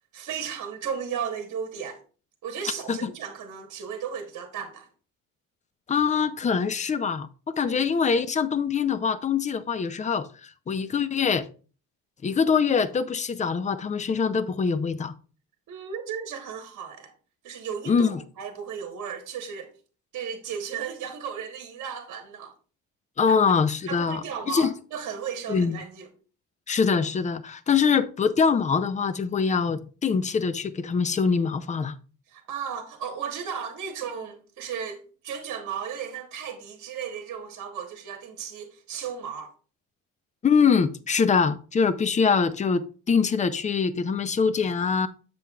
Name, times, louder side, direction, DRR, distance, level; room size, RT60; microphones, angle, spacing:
voice 1, 0.1-2.0 2.4-4.9 7.6-7.9 15.7-17.1 17.4-19.7 20.1-22.5 23.3-23.4 23.8-26.1 32.3-39.5, right 7 dB, 60° right, 1.2 m, -35 dB
voice 2, 5.9-11.5 12.2-15.1 17.9-18.2 23.2-24.7 25.5-25.8 26.7-31.9 40.4-45.1, left 5 dB, 20° left, 0.5 m, -24 dB
7.4 x 6.8 x 2.3 m
cardioid pair, 110°, 33 cm